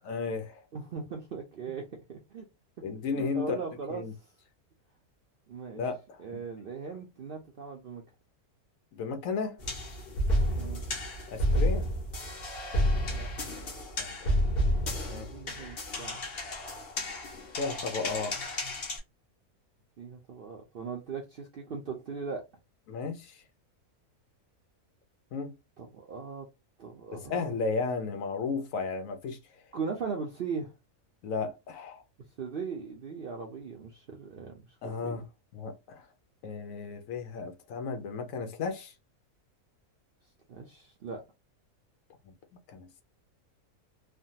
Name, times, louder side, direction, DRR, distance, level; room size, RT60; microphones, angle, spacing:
voice 1, 0.1-0.6 2.8-3.6 3.9-4.1 5.7-6.4 8.9-9.6 11.3-11.9 14.0-14.4 15.1-15.3 17.6-18.4 22.9-23.4 25.3-25.5 27.1-29.4 31.2-32.0 34.8-35.2 35.5-36.1 36.4-38.9 42.2-42.3 42.7-43.0, left 4 dB, 65° left, 1.0 m, -34 dB
voice 2, 0.7-2.5 3.2-4.1 5.5-5.8 6.2-8.0 10.5-10.8 13.1-13.3 15.1-16.2 20.0-22.4 25.8-26.5 26.8-27.5 29.7-30.7 32.4-34.5 34.8-35.3 40.5-41.2, right 5 dB, 75° right, 0.5 m, -39 dB
sound 1, 9.6-19.0, equal, 45° left, 1.0 m, -31 dB
3.2 x 2.2 x 2.7 m
omnidirectional pair, 1.6 m